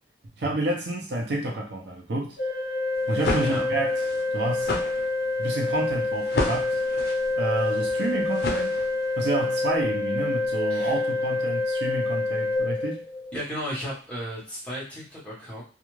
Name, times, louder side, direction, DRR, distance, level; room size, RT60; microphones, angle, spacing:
voice 1, 0.4-2.4 3.1-4.0 4.3-4.7 5.4-6.8 7.4-8.8 9.2-13.0, right 1 dB, 65° right, -1 dB, 0.7 m, -29 dB
Organ, 2.4-13.4, left 2 dB, 25° right, 1.1 m, -27 dB
sound 1, 2.9-9.2, left 2 dB, 60° left, 0.6 m, -32 dB
voice 2, 3.4-3.7 10.7-10.9 13.3-15.6, equal, 5° left, -7 dB, 1.1 m, -34 dB
2.4 x 2.3 x 3.0 m, 0.36 s
head